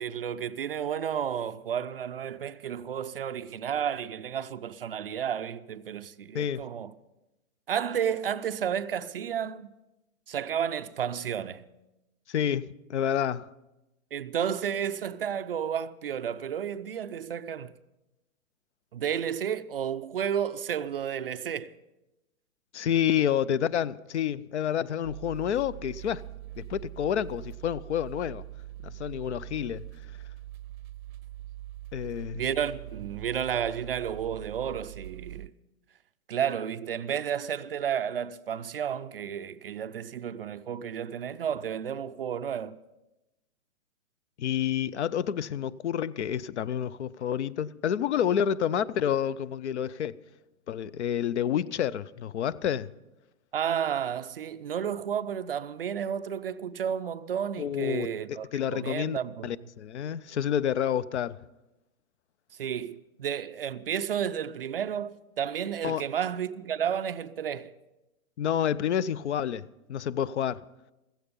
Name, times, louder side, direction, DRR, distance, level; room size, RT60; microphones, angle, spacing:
voice 1, 0.0-6.9 7.7-9.7 10.3-11.6 14.1-17.7 18.9-21.7 32.2-35.5 36.3-42.8 53.5-59.5 62.6-67.7, right 8 dB, 45° right, 0.4 m, -32 dB
voice 2, 12.3-13.5 22.7-26.2 26.6-28.4 28.8-29.8 31.9-32.4 44.4-50.2 50.7-52.9 57.6-59.2 59.4-61.4 65.8-66.0 68.4-70.6, left 9 dB, 55° left, 0.5 m, -29 dB
sound 1, 25.0-35.5, right 14 dB, 80° right, 0.7 m, -43 dB
15.5 x 15.0 x 5.2 m
hypercardioid pair, 155°, 42 cm